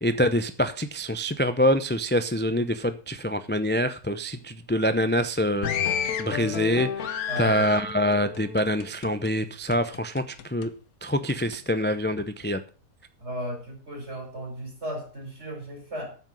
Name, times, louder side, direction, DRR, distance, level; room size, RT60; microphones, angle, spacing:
voice 1, 0.0-5.7 6.2-10.7 11.0-12.6, equal, 15° left, 10 dB, 0.3 m, -25 dB
sound 1, 5.6-9.3 9.7-10.7 11.3-11.6, left 8 dB, 80° left, 1.4 m, -31 dB
voice 2, 7.3-7.6 13.2-16.2, equal, 50° right, 2 dB, 5.1 m, -35 dB
9.3 x 8.0 x 7.5 m, 0.39 s
omnidirectional pair, 1.5 m